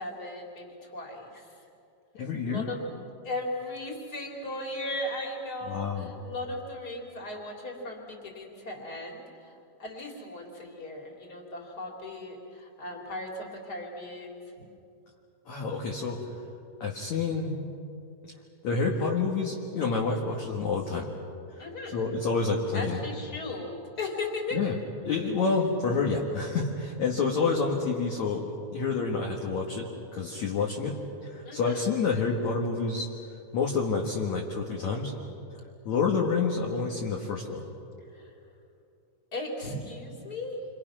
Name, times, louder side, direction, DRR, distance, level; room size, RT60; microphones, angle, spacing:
voice 1, 0.0-1.5 2.5-2.8 3.2-9.5 9.8-14.4 21.6-22.0 22.7-24.6 31.4-32.0 38.1-38.3 39.3-40.6, left 2 dB, 25° left, 0 dB, 3.1 m, -37 dB
voice 2, 2.1-2.7 5.7-6.1 15.5-16.2 16.8-17.6 18.2-18.3 18.6-21.1 21.9-23.0 24.5-24.7 25.1-28.4 28.7-30.9 31.2-33.1 33.5-35.1 35.9-37.7, left 4 dB, 55° left, -1 dB, 2.2 m, -28 dB
29.0 x 25.5 x 6.1 m, 2.6 s
omnidirectional pair, 5.5 m